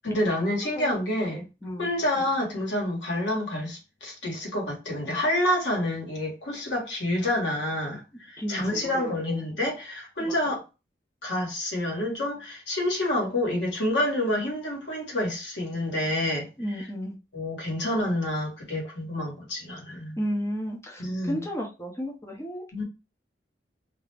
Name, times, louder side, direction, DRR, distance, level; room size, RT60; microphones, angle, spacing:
voice 1, 0.0-1.4 1.8-10.6 11.2-16.5 17.3-20.2 21.0-21.4 22.7-22.8, left 1 dB, 90° left, 1.1 m, -28 dB
voice 2, 1.3-1.9 2.2-2.3 8.4-9.4 10.2-10.5 16.6-17.1 20.2-22.6, equal, 15° left, 0.6 m, -33 dB
2.4 x 2.0 x 3.2 m
head